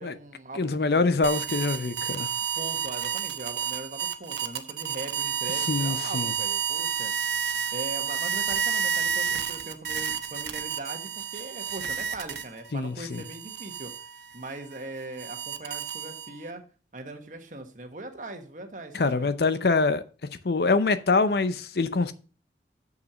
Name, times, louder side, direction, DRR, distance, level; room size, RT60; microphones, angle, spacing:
voice 1, 0.0-1.1 2.5-7.1 7.7-16.6 16.9-19.3, right 2 dB, 45° right, 1.4 m, -40 dB
voice 2, 0.6-2.3 5.7-6.3 12.7-13.2 18.9-20.0 20.4-22.1, left 3 dB, 65° left, 0.7 m, -24 dB
sound 1, 1.2-12.7 13.1-16.5, right 8 dB, 75° right, 1.0 m, -30 dB
6.6 x 5.9 x 6.1 m
head